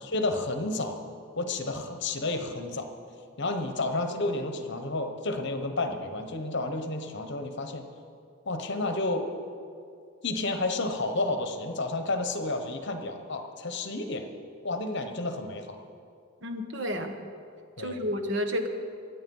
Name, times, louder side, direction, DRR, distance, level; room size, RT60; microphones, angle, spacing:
voice 1, 0.0-1.0 1.4-2.9 3.4-7.9 8.4-9.3 10.2-14.3 14.6-15.8 17.8-18.1, left 2 dB, 55° left, 6 dB, 1.1 m, -31 dB
voice 2, 16.4-17.2 17.8-18.7, equal, 60° right, 6 dB, 1.3 m, -31 dB
22.5 x 8.4 x 5.5 m, 2.4 s
head